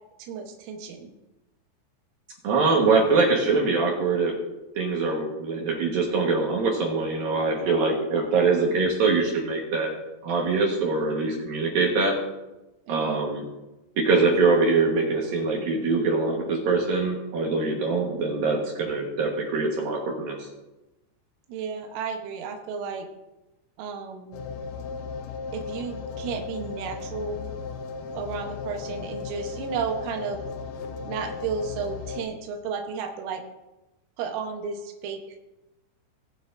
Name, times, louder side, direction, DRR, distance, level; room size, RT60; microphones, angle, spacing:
voice 1, 0.2-1.1 12.9-13.2 21.5-23.1 23.8-24.3 25.5-27.5 28.2-30.4 31.1-33.4 34.2-35.4, right 6 dB, 90° right, 3 dB, 3.7 m, -33 dB
voice 2, 2.4-4.3 4.8-9.9 10.2-12.2 12.9-13.4 14.0-20.4, right 3 dB, 65° right, -1 dB, 2.5 m, -23 dB
sound 1, 24.3-32.3, left 5 dB, 90° left, 3.5 m, -36 dB
21.5 x 7.6 x 2.6 m, 1.0 s
omnidirectional pair, 5.5 m